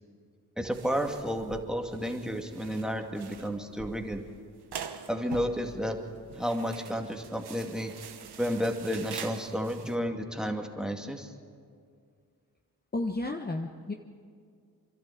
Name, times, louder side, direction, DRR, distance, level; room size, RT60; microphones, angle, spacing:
voice 1, 0.6-4.2 5.1-6.0 6.3-7.9 8.4-11.3, equal, ahead, 3 dB, 2.2 m, -31 dB
sound 1, 0.7-10.0, right 7 dB, 85° right, 1.2 m, -45 dB
voice 2, 12.9-13.9, left 2 dB, 25° left, 4 dB, 1.1 m, -32 dB
26.5 x 12.0 x 8.5 m, 2.2 s
cardioid pair, 55°, 38 cm